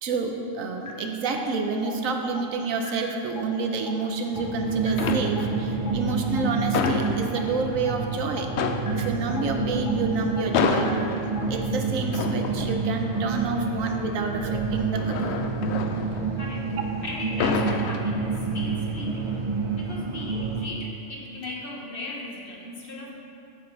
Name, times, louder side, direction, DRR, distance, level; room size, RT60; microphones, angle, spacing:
voice 1, 0.0-8.5 8.9-11.2 11.5-15.4, right 4 dB, 80° right, 4 dB, 1.2 m, -29 dB
sound 1, 0.9-1.0 1.4-1.5 1.9-2.0 2.4-2.5 2.9-3.0 3.4-3.5 3.9-4.0 4.4-4.5 4.9-5.0 5.4-5.5 5.9-6.0 6.4-6.5 6.9-7.0 7.4-7.5 7.9-8.0 8.4-8.5 8.9-9.0 9.4-9.5 9.9-10.0 10.4-10.5 10.9-11.0 11.4-11.5, left 6 dB, 15° left, 0.7 m, -37 dB
sound 2, 3.9-4.5 4.9-5.7 6.1-7.8 8.1-8.2 8.5-16.8 17.2-18.6 19.0-19.3, left 6 dB, 65° left, 0.8 m, -30 dB
sound 3, 4.3-20.7, right 4 dB, 50° right, 0.4 m, -28 dB
voice 2, 16.4-16.7 17.0-19.3 19.8-23.1, left 2 dB, 45° left, -1 dB, 1.2 m, -37 dB
8.8 x 7.8 x 4.0 m, 2.6 s
omnidirectional pair, 1.4 m